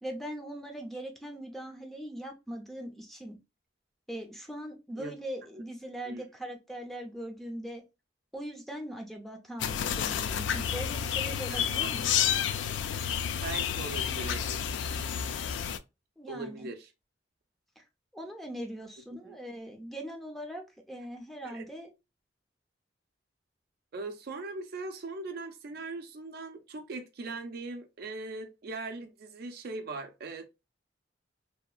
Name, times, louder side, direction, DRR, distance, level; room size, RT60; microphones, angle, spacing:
voice 1, 0.0-3.4 4.1-7.8 8.3-12.1 16.2-16.7 17.8-17.9 18.1-20.6 20.9-21.9, right 1 dB, ahead, 0.5 m, -40 dB
sound 1, 9.6-15.8, left 8 dB, 75° left, 0.3 m, -30 dB
voice 2, 11.5-11.9 13.4-14.6 16.3-16.9 19.2-19.4 21.4-21.6 23.9-30.5, right 3 dB, 55° right, 0.5 m, -40 dB
2.8 x 2.3 x 2.2 m
head